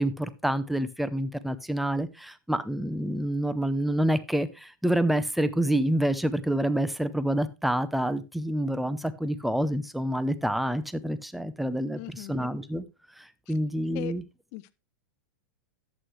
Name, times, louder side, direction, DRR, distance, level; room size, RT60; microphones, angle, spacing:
voice 1, 0.0-12.9 13.5-14.2, right 1 dB, ahead, 0.7 m, -27 dB
voice 2, 11.9-12.5 13.5-13.6 13.9-14.1 14.5-14.7, left 18 dB, 50° left, 0.8 m, -39 dB
11.0 x 8.3 x 3.2 m
hypercardioid pair, 120°, 11 cm